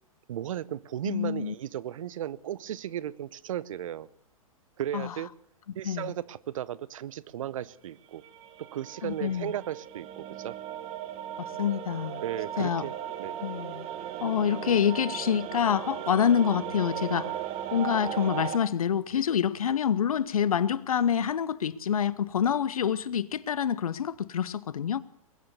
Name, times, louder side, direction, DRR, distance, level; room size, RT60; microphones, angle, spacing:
voice 1, 0.3-4.1 4.8-5.3 5.7-8.2 8.6-10.5 12.2-12.9 13.2-13.4, right 11 dB, 65° right, 0.8 m, -35 dB
voice 2, 1.0-1.5 4.9-5.2 5.8-6.1 9.0-9.5 11.4-12.2 12.6-12.8 13.4-13.9 14.2-17.3 17.7-25.0, left 8 dB, 75° left, 0.8 m, -27 dB
sound 1, 8.2-18.6, right 10 dB, 35° right, 1.5 m, -37 dB
21.5 x 9.8 x 6.8 m
hypercardioid pair, 115°, 18 cm